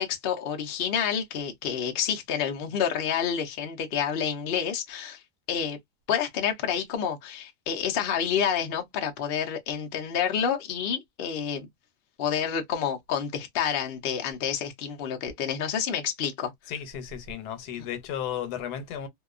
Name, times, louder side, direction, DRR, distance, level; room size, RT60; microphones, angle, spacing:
voice 1, 0.0-5.2 5.5-5.8 6.1-11.7 12.2-16.5, left 8 dB, 55° left, 0.7 m, -29 dB
voice 2, 16.7-19.1, left 9 dB, 90° left, 1.2 m, -34 dB
2.7 x 2.2 x 2.4 m
omnidirectional pair, 1.6 m